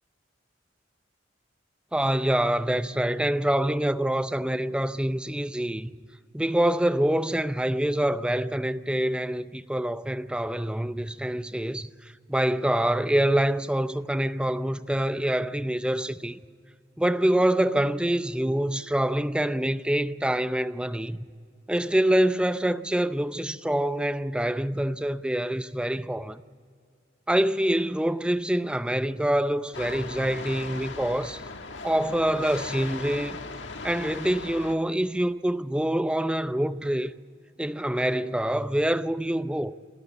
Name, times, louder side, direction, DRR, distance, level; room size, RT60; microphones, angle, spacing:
voice 1, 1.9-5.9 6.3-11.9 12.3-16.4 17.0-21.2 21.7-26.4 27.3-31.4 31.8-33.4 33.8-37.1 37.6-39.7, right 1 dB, 5° right, 0.5 m, -25 dB
sound 1, 29.7-34.8, left 4 dB, 75° left, 1.6 m, -38 dB
27.0 x 12.5 x 9.5 m
head